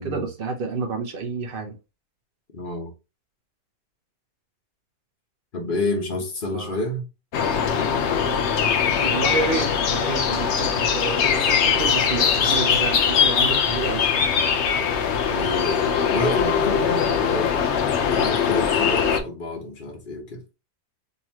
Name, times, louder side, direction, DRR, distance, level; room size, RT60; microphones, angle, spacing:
voice 1, 0.0-1.8 6.5-6.8 9.0-14.1, right 4 dB, 55° right, 0.6 m, -29 dB
voice 2, 2.5-2.9 5.5-7.1 15.3-20.4, left 2 dB, 35° left, 1.2 m, -29 dB
sound 1, 7.3-19.2, left 7 dB, 60° left, 0.8 m, -21 dB
3.9 x 3.0 x 2.9 m
omnidirectional pair, 1.7 m